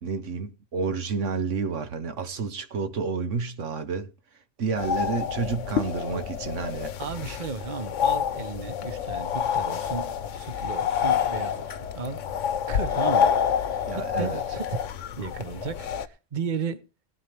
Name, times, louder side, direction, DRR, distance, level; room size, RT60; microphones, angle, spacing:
voice 1, 0.0-4.1 4.6-6.9 13.9-14.4, right 4 dB, 80° right, 1.4 m, -30 dB
sound 1, 4.8-16.1, left 8 dB, 80° left, 1.1 m, -28 dB
voice 2, 7.0-12.2 12.7-14.9 15.2-16.8, right 5 dB, 40° right, 1.2 m, -35 dB
18.0 x 9.4 x 3.4 m
omnidirectional pair, 1.3 m